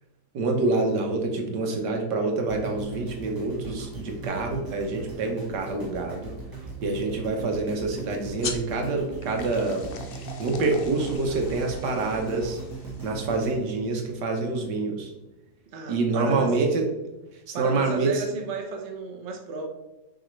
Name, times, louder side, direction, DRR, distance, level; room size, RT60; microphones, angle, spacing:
voice 1, 0.3-6.3 6.8-9.9 10.4-12.6 13.0-15.1 15.9-16.8 17.5-18.2, right 3 dB, 80° right, 2 dB, 1.7 m, -26 dB
sound 1, 2.5-14.7 15.2-15.3, right 3 dB, 15° right, 1.1 m, -39 dB
open and pour, 8.4-13.5, left 5 dB, 60° left, 0.5 m, -40 dB
voice 2, 15.7-16.6 17.5-19.7, right 4 dB, 50° right, 2 dB, 1.1 m, -33 dB
6.5 x 5.0 x 3.2 m, 1.0 s
omnidirectional pair, 1.8 m